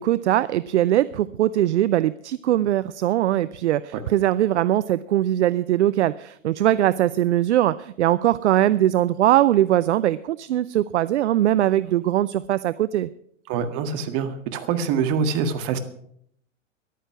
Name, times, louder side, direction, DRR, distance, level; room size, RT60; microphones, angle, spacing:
voice 1, 0.0-13.1, right 13 dB, 60° right, 16 dB, 0.6 m, -21 dB
voice 2, 13.5-15.8, right 6 dB, 40° right, 8 dB, 1.8 m, -25 dB
14.0 x 11.0 x 5.9 m, 0.69 s
figure-of-eight pair, 100°, 39 cm